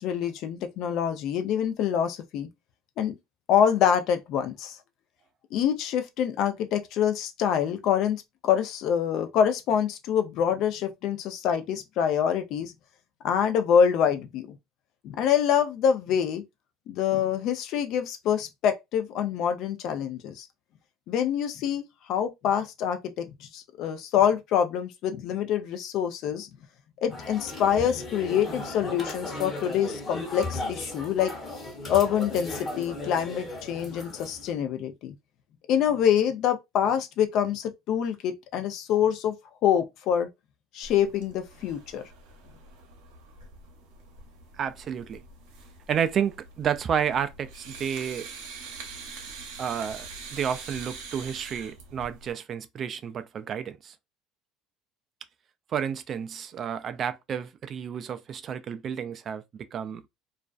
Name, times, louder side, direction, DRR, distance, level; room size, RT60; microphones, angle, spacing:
voice 1, 0.0-2.5 3.0-3.1 3.5-4.8 5.5-12.7 13.2-14.6 15.0-16.4 16.9-20.5 21.1-21.8 22.1-26.5 27.0-31.3 31.9-35.1 35.7-39.3 39.6-40.3 40.7-42.0, left 8 dB, 60° left, 0.5 m, -26 dB
sound 1, 27.1-34.5, left 2 dB, 30° left, 1.0 m, -36 dB
sound 2, 40.8-52.3, right 4 dB, 80° right, 0.8 m, -44 dB
voice 2, 44.6-45.2 45.9-48.3 49.6-53.9 55.7-59.4 59.7-60.0, right 8 dB, 45° right, 0.3 m, -31 dB
2.4 x 2.2 x 2.3 m
supercardioid pair, 95°, 0 cm